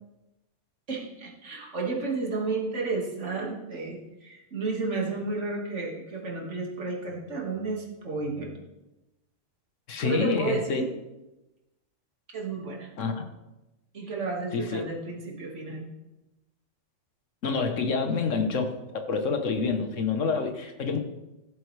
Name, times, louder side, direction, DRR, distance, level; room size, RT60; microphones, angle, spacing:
voice 1, 0.9-8.5 10.0-10.9 12.3-12.9 13.9-15.9 18.0-18.1, right 3 dB, 65° right, -1 dB, 2.2 m, -32 dB
voice 2, 9.9-10.8 13.0-13.2 14.5-14.8 17.4-21.0, left 5 dB, 75° left, 6 dB, 1.4 m, -27 dB
15.0 x 7.9 x 3.3 m, 1.0 s
omnidirectional pair, 1.3 m